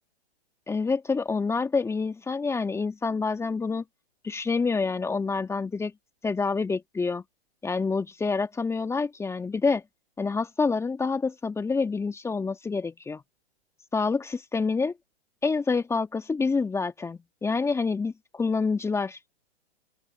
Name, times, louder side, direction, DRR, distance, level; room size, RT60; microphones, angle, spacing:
voice 1, 0.7-3.8 4.2-5.9 6.2-7.2 7.6-9.8 10.2-13.2 13.9-14.9 15.4-19.2, left 4 dB, 10° left, 2.2 m, -27 dB
open air
hypercardioid pair, 125°, 32 cm